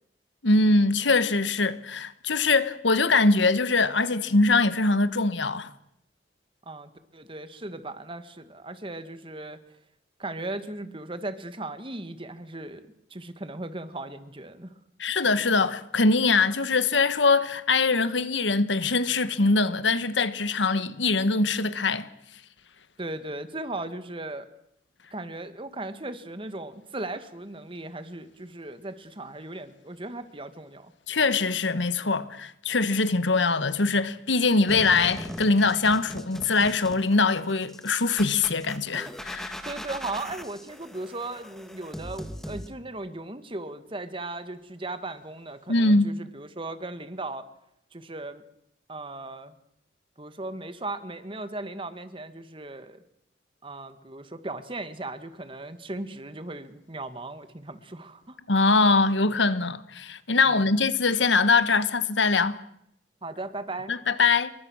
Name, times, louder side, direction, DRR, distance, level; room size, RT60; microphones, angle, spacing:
voice 1, 0.4-5.7 15.0-22.1 31.1-39.6 45.7-46.1 58.5-62.6 63.9-64.5, left 3 dB, 85° left, 1.4 m, -23 dB
voice 2, 6.7-9.6 10.2-12.8 13.1-14.7 23.0-24.5 25.1-30.9 39.6-47.5 47.9-48.4 48.9-49.5 50.2-53.0 53.6-58.4 60.4-60.7 63.2-63.9, right 2 dB, 30° right, 1.8 m, -37 dB
sound 1, 34.7-42.7, equal, ahead, 2.0 m, -40 dB
28.0 x 23.5 x 6.4 m
head